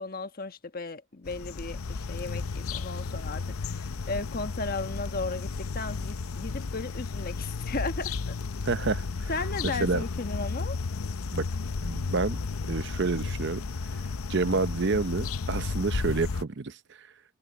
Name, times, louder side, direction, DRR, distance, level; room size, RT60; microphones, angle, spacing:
voice 1, 0.0-8.3 9.3-10.8, left 3 dB, 45° left, 1.3 m, -35 dB
sound 1, 1.3-16.4, left 4 dB, 85° left, 0.6 m, -33 dB
voice 2, 8.6-9.3 9.6-10.0 11.3-11.5 11.8-12.4 12.7-13.6 14.3-17.1, right 4 dB, 55° right, 0.7 m, -29 dB
head